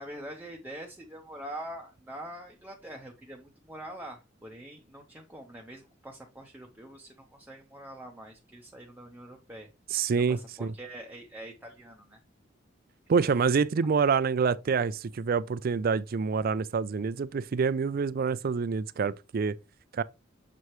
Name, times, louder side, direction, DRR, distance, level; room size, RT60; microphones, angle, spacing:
voice 1, 0.0-9.7 10.3-12.2, right 1 dB, 10° right, 0.8 m, -44 dB
voice 2, 9.9-10.7 13.1-19.5 19.9-20.0, right 5 dB, 50° right, 0.4 m, -27 dB
6.9 x 4.7 x 3.0 m
head